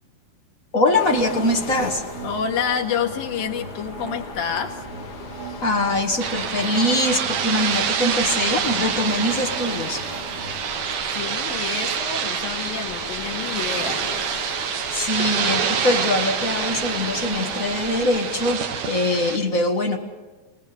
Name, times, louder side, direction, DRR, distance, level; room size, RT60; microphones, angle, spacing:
voice 1, 0.7-2.0 5.6-10.0 14.9-20.0, left 1 dB, 35° left, 2 dB, 1.4 m, -23 dB
sound 1, 0.9-18.6, left 5 dB, 60° left, 3.6 m, -38 dB
sound 2, 1.3-10.6, right 5 dB, 80° right, 5.6 m, -39 dB
voice 2, 2.2-4.8 5.3-5.6 11.1-14.0, left 7 dB, 75° left, 2 dB, 3.7 m, -28 dB
sound 3, 6.2-19.4, right 7 dB, 65° right, 2.8 m, -26 dB
26.5 x 19.5 x 6.9 m, 1.3 s
omnidirectional pair, 4.2 m